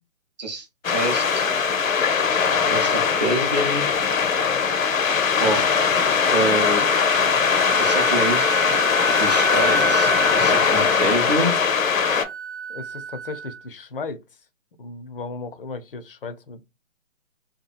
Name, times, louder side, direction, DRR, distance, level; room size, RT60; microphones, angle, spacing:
voice 1, 0.4-1.4 2.7-3.9 5.4-5.7 6.3-6.8 7.8-8.6 9.2-11.5, right 2 dB, 35° right, 0.5 m, -26 dB
sound 1, 0.8-12.2, left 6 dB, 80° left, 0.7 m, -20 dB
Wind instrument woodwind instrument, 5.9-13.7, right 3 dB, 55° right, 0.8 m, -30 dB
voice 2, 12.7-14.2 14.8-16.6, left 4 dB, 45° left, 0.4 m, -35 dB
2.8 x 2.3 x 2.3 m
figure-of-eight pair, 150°, 40 cm